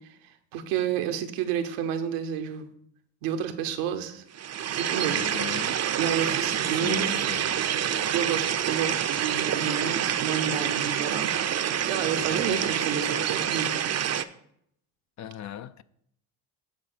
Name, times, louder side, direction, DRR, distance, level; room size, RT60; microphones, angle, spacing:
voice 1, 0.5-2.7 3.2-4.2 4.8-5.2 6.0-7.2 8.1-11.3 11.8-13.8, right 8 dB, 85° right, 1.1 m, -30 dB
sound 1, 4.3-14.2, right 9 dB, 35° right, 0.6 m, -27 dB
voice 2, 5.1-5.8 6.8-7.6 12.3-12.8 15.2-15.8, left 11 dB, 40° left, 0.5 m, -38 dB
8.5 x 3.9 x 6.7 m
supercardioid pair, 75°, 44 cm